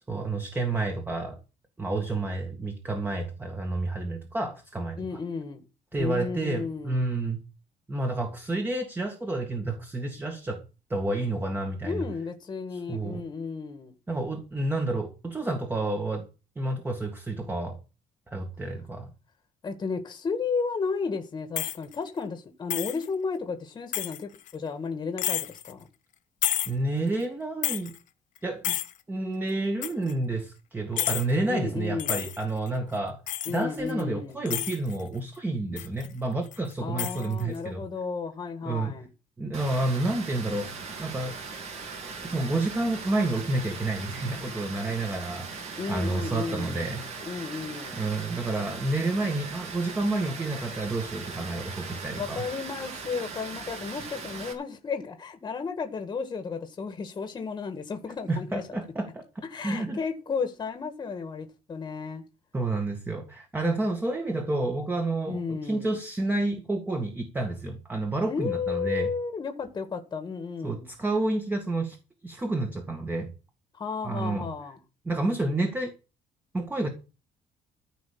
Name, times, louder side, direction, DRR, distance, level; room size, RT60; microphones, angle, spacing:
voice 1, 0.1-1.4 1.8-5.2 5.9-7.4 7.9-10.6 10.9-12.1 12.9-13.2 14.1-16.3 16.5-17.8 18.3-19.1 26.6-27.9 28.4-28.8 29.1-33.2 33.5-37.8 38.6-38.9 39.4-40.7 41.0-41.4 42.2-45.5 45.9-47.0 48.0-52.4 58.3-59.3 59.6-60.0 62.5-69.1 70.6-72.0 72.2-73.3 74.0-74.5 75.0-75.9 76.5-76.9, right 2 dB, 15° right, 1.8 m, -29 dB
voice 2, 5.0-5.6 5.9-7.1 11.8-13.9 19.6-25.9 31.5-32.2 33.4-34.4 36.8-39.1 45.8-46.8 47.2-48.0 52.1-58.6 59.5-62.2 65.3-65.9 68.3-70.9 73.7-74.8, left 5 dB, 30° left, 1.7 m, -33 dB
sound 1, 21.6-22.0 22.7-23.1 23.9-24.5 25.2-25.7 26.4-26.7 27.2-27.3 27.6-28.0 28.4-28.5 28.6-28.9 29.8-30.1 30.9-31.3 32.0-32.7 33.3-34.0 34.5-35.0 35.8-36.1 36.5-36.7 37.0-37.6, left 13 dB, 65° left, 1.2 m, -30 dB
Water, 39.5-54.5, right 4 dB, 50° right, 3.6 m, -39 dB
14.5 x 5.2 x 8.5 m
cardioid pair, 155°, 14 cm